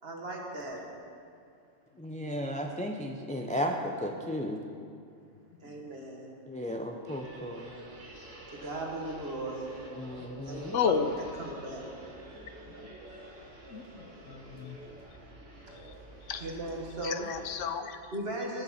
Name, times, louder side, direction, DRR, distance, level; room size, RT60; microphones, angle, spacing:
voice 1, 0.0-0.8 5.6-6.3 8.5-9.7 10.5-11.0 11.3-11.8 15.7-15.8 16.4-17.3 18.1-18.6, right 1 dB, 50° right, -1 dB, 1.9 m, -37 dB
voice 2, 2.0-4.6 6.5-7.7 10.0-10.8, equal, 10° left, 2 dB, 0.4 m, -34 dB
sound 1, 7.0-17.5, right 1 dB, 75° right, 2.3 m, -48 dB
voice 3, 10.7-11.1 13.7-13.8 14.3-14.7 16.3-16.4 17.0-18.0, left 7 dB, 80° left, 9 dB, 1.0 m, -31 dB
18.5 x 7.0 x 4.3 m, 2.4 s
omnidirectional pair, 1.3 m